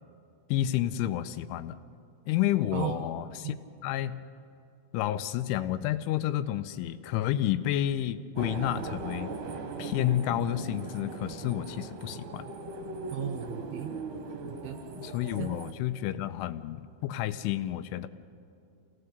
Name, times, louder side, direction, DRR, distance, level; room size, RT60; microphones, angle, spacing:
voice 1, 0.5-1.8 2.3-4.2 4.9-9.3 9.8-12.5 15.0-18.1, left 12 dB, 85° left, 12 dB, 3.1 m, -30 dB
sound 1, 8.4-15.7, right 4 dB, 60° right, 2.2 m, -39 dB
voice 2, 13.1-13.9 14.5-14.8 15.4-15.5, right 10 dB, 80° right, 6 dB, 2.2 m, -35 dB
27.0 x 18.0 x 6.6 m, 2.6 s
omnidirectional pair, 5.7 m